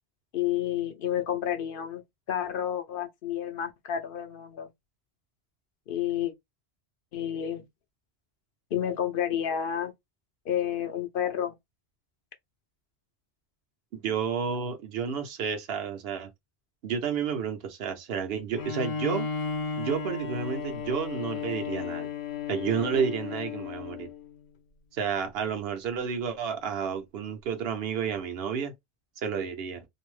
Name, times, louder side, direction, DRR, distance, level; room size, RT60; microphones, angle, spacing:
voice 1, 0.3-4.7 5.9-6.3 7.1-7.7 8.7-9.9 10.5-11.6, left 10 dB, 65° left, 0.7 m, -30 dB
voice 2, 13.9-16.3 16.8-19.3 19.8-22.1 22.5-24.1 24.9-28.7 29.2-29.8, right 7 dB, 70° right, 0.9 m, -31 dB
Bowed string instrument, 18.6-24.2, left 6 dB, 85° left, 0.9 m, -34 dB
2.7 x 2.0 x 3.1 m
omnidirectional pair, 1.1 m